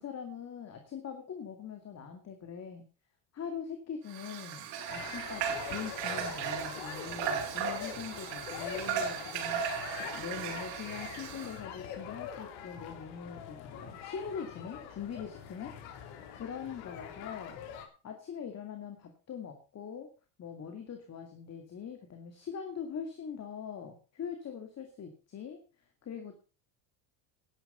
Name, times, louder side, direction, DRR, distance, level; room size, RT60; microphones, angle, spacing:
voice 1, 0.0-2.8 3.3-17.6 18.0-20.1 20.4-25.6 26.0-26.4, left 7 dB, 30° left, 5 dB, 2.4 m, -42 dB
Water / Water tap faucet, 4.1-11.6, right 7 dB, 65° right, 4.9 m, -36 dB
sound 1, 4.9-17.9, left 8 dB, 75° left, 3.2 m, -44 dB
12.0 x 11.0 x 5.5 m, 0.34 s
cardioid pair, 135°, 49 cm